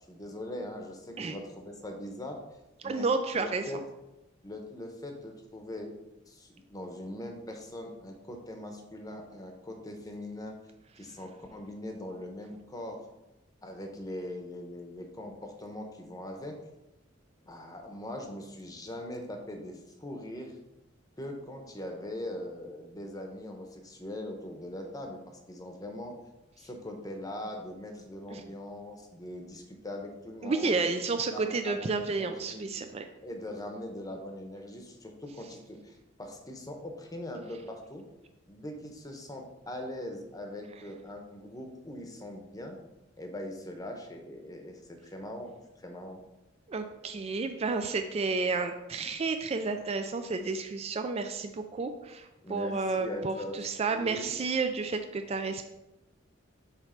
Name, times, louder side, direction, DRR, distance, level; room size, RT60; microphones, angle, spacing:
voice 1, 0.1-2.4 2.8-3.1 3.3-3.8 4.4-5.9 6.3-10.6 11.0-13.1 13.6-16.6 17.4-20.6 21.2-26.1 26.6-30.8 31.3-32.7 33.2-38.1 38.5-42.8 43.2-46.2 52.4-53.6 53.9-54.3, left 1 dB, 20° left, 3 dB, 0.9 m, -41 dB
voice 2, 2.8-3.7 28.3-28.5 30.4-33.0 46.7-55.7, right 4 dB, 30° right, 7 dB, 0.4 m, -31 dB
7.4 x 3.1 x 5.0 m, 0.97 s
head